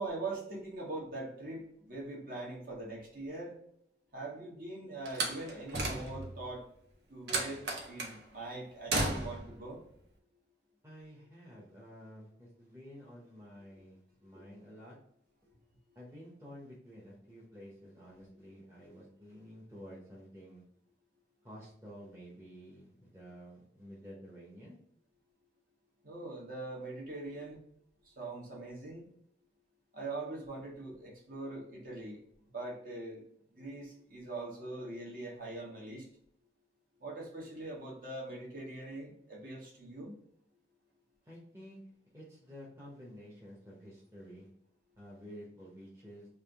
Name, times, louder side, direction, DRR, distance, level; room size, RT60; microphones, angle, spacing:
voice 1, 0.0-3.5 4.1-6.6 7.1-9.8 26.0-27.6 28.0-29.0 29.9-32.2 32.5-33.2 33.5-36.1 37.0-40.1, right 2 dB, 50° right, -3 dB, 1.3 m, -42 dB
Slam, 5.1-6.4 7.3-8.2 8.9-9.5, right 2 dB, 75° right, 0.8 m, -34 dB
voice 2, 10.8-15.0 15.9-20.6 21.4-24.8 41.3-41.8 42.1-44.5 45.0-46.3, equal, 15° right, -5 dB, 0.9 m, -51 dB
3.5 x 2.6 x 3.5 m, 0.70 s
head